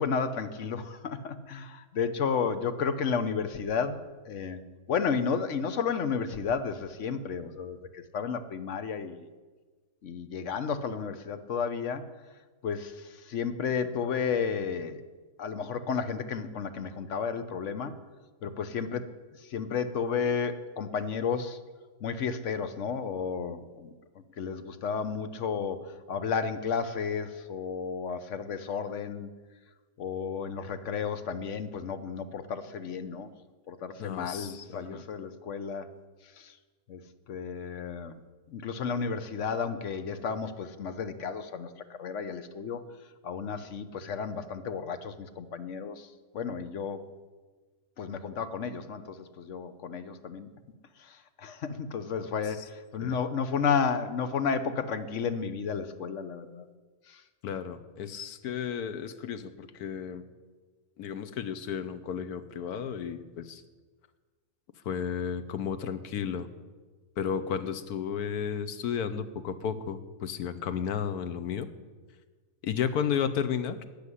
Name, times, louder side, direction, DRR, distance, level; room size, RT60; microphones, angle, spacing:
voice 1, 0.0-4.6 4.9-9.3 10.0-12.1 12.6-15.0 15.4-17.9 18.4-19.1 19.4-21.6 22.0-23.9 24.4-29.3 30.0-33.3 33.7-35.9 36.4-36.5 36.9-37.0 37.3-38.2 38.5-42.8 43.2-46.1 46.3-47.0 48.0-50.5 51.0-56.7 57.1-57.2, left 6 dB, 60° left, 10 dB, 1.1 m, -32 dB
voice 2, 34.0-35.1 53.0-53.2 57.4-60.2 61.0-63.6 64.8-66.5 67.2-71.7 72.6-73.8, left 7 dB, 85° left, 11 dB, 1.3 m, -33 dB
13.5 x 6.9 x 9.9 m, 1.4 s
omnidirectional pair, 1.6 m